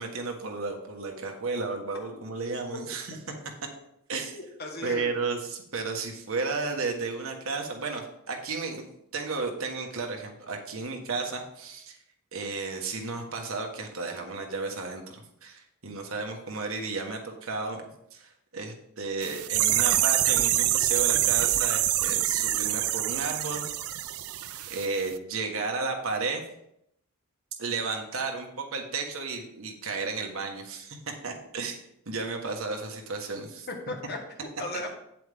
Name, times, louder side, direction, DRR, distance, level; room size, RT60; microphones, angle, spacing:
voice 1, 0.0-3.2 4.1-4.4 4.8-8.8 9.1-12.0 12.3-17.8 18.1-23.6 24.7-26.4 27.6-31.0 31.2-33.7, right 4 dB, 75° right, 2 dB, 1.4 m, -33 dB
voice 2, 4.3-5.1 33.7-34.9, left 2 dB, 45° left, 2 dB, 1.6 m, -36 dB
sound 1, 19.2-24.9 25.1-25.2, right 13 dB, 90° right, 0.5 m, -25 dB
8.7 x 7.6 x 3.6 m, 0.77 s
head